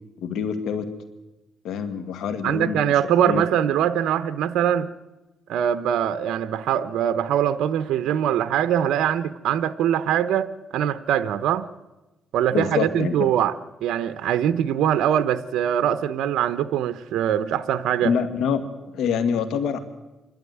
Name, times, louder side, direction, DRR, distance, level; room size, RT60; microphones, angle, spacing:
voice 1, 0.2-0.9 1.6-3.0 3.2-3.4 12.5-13.3 18.0-18.6 18.9-19.8, left 7 dB, 80° left, 9 dB, 1.7 m, -25 dB
voice 2, 2.4-4.9 5.5-11.6 12.3-13.5 13.8-18.1, right 10 dB, 80° right, 12 dB, 0.8 m, -22 dB
27.0 x 12.0 x 9.4 m, 1.1 s
cardioid pair, 90°, 0 cm